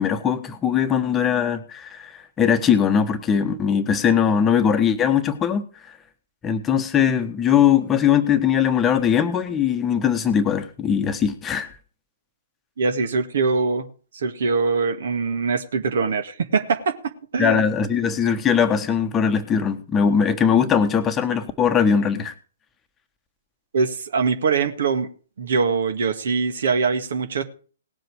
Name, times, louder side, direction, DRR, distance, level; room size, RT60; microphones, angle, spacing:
voice 1, 0.0-5.7 6.4-11.7 17.4-22.3, left 7 dB, 15° left, 1.3 m, -20 dB
voice 2, 12.8-13.9 14.1-17.6 23.7-25.1 25.4-27.4, right 4 dB, 55° right, 1.9 m, -23 dB
19.0 x 7.8 x 4.7 m
figure-of-eight pair, 120°, 0 cm